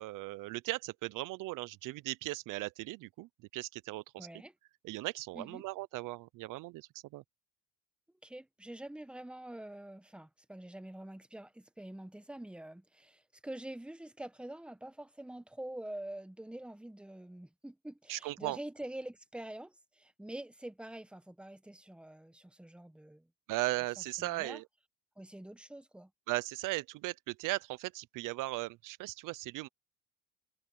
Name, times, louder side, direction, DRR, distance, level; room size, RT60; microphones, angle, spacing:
voice 1, 0.0-4.3 4.8-7.2 18.1-18.6 23.5-24.6 26.3-29.7, right 20 dB, 65° right, 0.6 m, -37 dB
voice 2, 4.2-4.5 5.3-5.6 8.2-23.3 24.2-24.6 25.2-26.1, right 1 dB, 5° right, 1.3 m, -46 dB
cardioid pair, 125°, 34 cm